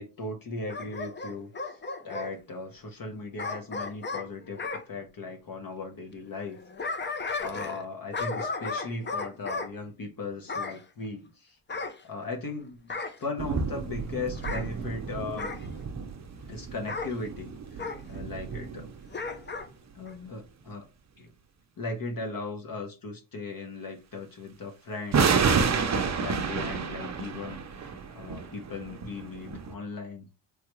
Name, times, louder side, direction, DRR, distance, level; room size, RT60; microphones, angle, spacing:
voice 1, 0.0-4.6 4.9-11.6 12.0-15.5 16.5-18.9 19.9-20.9 21.2-21.3 21.8-25.3 25.8-30.3, left 3 dB, 45° left, 0.8 m, -38 dB
Bark / Growling, 0.7-2.3 3.4-4.8 6.5-7.9 8.1-9.7 10.5-10.8 11.7-12.5 12.9-13.2 14.3-14.7 15.4-15.7 16.9-17.1 17.8-18.0 19.1-19.7 20.1-20.2, left 3 dB, 25° left, 0.5 m, -34 dB
sound 1, 13.4-19.6 25.1-29.7, right 5 dB, 35° right, 0.6 m, -30 dB
3.3 x 2.3 x 3.0 m
cardioid pair, 80°, 48 cm